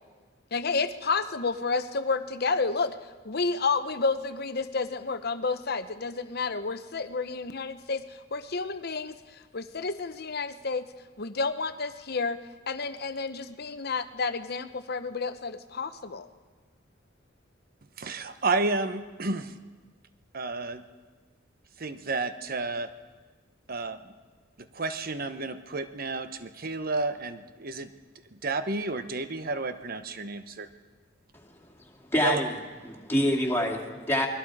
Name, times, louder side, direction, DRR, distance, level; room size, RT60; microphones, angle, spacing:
voice 1, 0.5-3.0 3.2-10.9 11.2-12.4 12.7-16.3, left 4 dB, 55° left, 11 dB, 0.9 m, -30 dB
voice 2, 18.0-19.6 20.3-20.8 21.8-22.9 23.7-24.1 24.6-27.9 28.3-30.7 32.2-32.4, right 3 dB, 50° right, 10 dB, 1.0 m, -31 dB
voice 3, 32.1-32.5 32.9-34.3, equal, 10° left, 0 dB, 2.6 m, -26 dB
28.5 x 20.5 x 4.9 m, 1.4 s
head